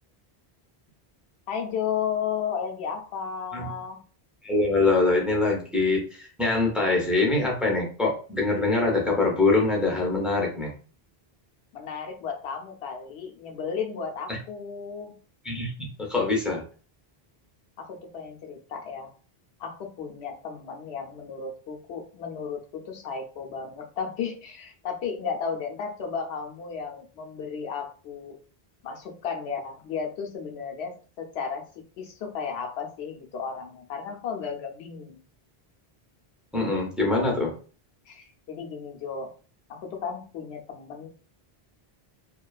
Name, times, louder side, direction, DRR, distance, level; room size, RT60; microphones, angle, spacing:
voice 1, 1.5-4.0 11.7-15.1 17.8-19.1 19.6-28.4 28.8-31.6 32.0-35.2 38.1-39.3 39.7-41.1, left 6 dB, 85° left, 2 dB, 0.8 m, -34 dB
voice 2, 4.4-10.7 14.3-14.4 15.4-16.6 36.5-37.5, left 3 dB, ahead, -1 dB, 0.4 m, -24 dB
2.4 x 2.2 x 2.3 m, 0.39 s
omnidirectional pair, 1.0 m